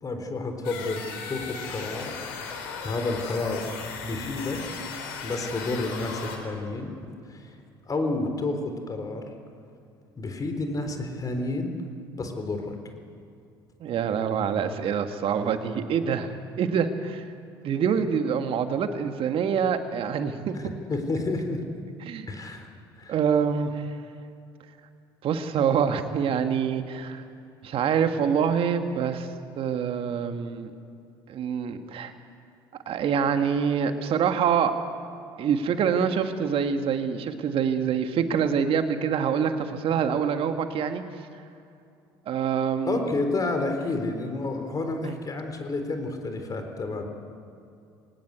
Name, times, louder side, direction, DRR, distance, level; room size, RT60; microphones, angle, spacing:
voice 1, 0.0-2.2 2.4-3.7 4.0-4.9 5.2-6.9 7.3-7.6 7.9-9.3 10.2-11.8 12.2-12.8 20.5-20.6 20.9-21.6 22.3-22.7 23.0-23.1 42.8-47.0, left 2 dB, 30° left, 5 dB, 4.0 m, -30 dB
sound 1, 0.6-6.4, left 5 dB, 75° left, 3.6 m, -37 dB
voice 2, 13.8-16.3 16.6-17.3 17.6-20.5 22.1-22.3 23.1-23.9 25.2-27.2 27.6-29.3 29.6-30.7 31.3-32.1 32.9-34.7 35.4-41.0 42.3-43.1 45.0-45.2, right 7 dB, 50° right, 7 dB, 1.9 m, -25 dB
22.0 x 18.5 x 8.3 m, 2.5 s
hypercardioid pair, 65°, 12 cm